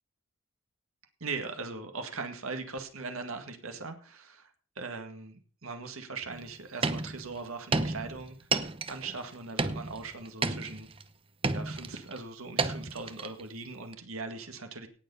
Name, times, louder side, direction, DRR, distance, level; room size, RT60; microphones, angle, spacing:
voice 1, 1.2-10.9 11.5-14.9, right 4 dB, 80° right, 6 dB, 1.9 m, -40 dB
sound 1, 6.3-6.4 6.8-7.3 7.7-9.3 9.6-11.0 11.4-12.2 12.6-13.4 13.9-14.0, right 3 dB, 25° right, 0.8 m, -32 dB
18.0 x 7.0 x 5.6 m, 0.42 s
head